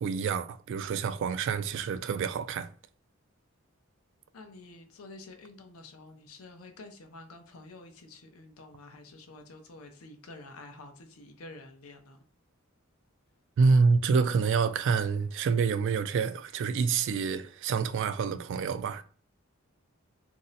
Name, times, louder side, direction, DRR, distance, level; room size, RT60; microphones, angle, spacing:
voice 1, 0.0-2.7 13.6-19.0, right 5 dB, 60° right, 0.3 m, -27 dB
voice 2, 4.3-12.2, left 2 dB, 90° left, 0.6 m, -49 dB
2.6 x 2.1 x 3.9 m
head